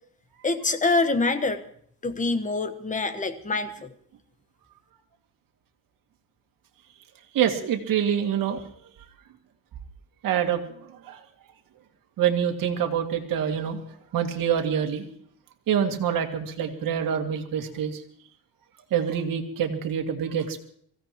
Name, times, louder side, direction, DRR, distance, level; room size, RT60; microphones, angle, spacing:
voice 1, 0.4-1.6 2.0-3.9, left 3 dB, 20° left, 9 dB, 1.3 m, -25 dB
voice 2, 7.3-8.7 10.2-10.6 10.9-11.2 12.2-13.8 14.1-15.1 15.7-18.0 18.9-20.6, right 8 dB, 60° right, 4 dB, 2.3 m, -26 dB
23.5 x 16.0 x 3.0 m, 0.63 s
cardioid pair, 140°, 38 cm